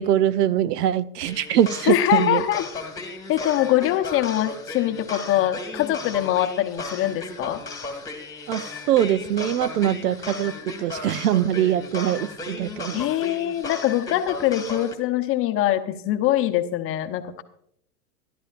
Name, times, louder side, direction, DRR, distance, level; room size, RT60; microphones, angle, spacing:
voice 1, 0.0-2.4 8.5-10.5 10.8-13.0, right 11 dB, 75° right, 0.8 m, -22 dB
sound 1, 1.3-14.9, left 3 dB, 5° left, 1.8 m, -35 dB
voice 2, 1.9-2.7 3.3-7.6 12.9-17.4, left 13 dB, 30° left, 0.8 m, -23 dB
22.0 x 12.0 x 2.5 m
hypercardioid pair, 130°, 48 cm